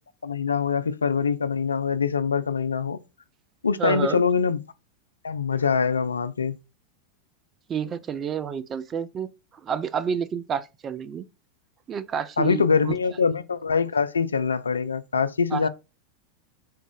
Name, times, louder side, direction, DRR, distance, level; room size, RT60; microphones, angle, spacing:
voice 1, 0.2-3.0 3.6-4.6 5.2-6.6 12.4-15.7, left 5 dB, 75° left, 0.3 m, -24 dB
voice 2, 3.8-4.2 7.7-9.3 9.6-11.3 11.9-13.0 15.5-15.7, right 7 dB, 25° right, 0.3 m, -29 dB
3.9 x 2.4 x 3.7 m
figure-of-eight pair, 90°, 0 cm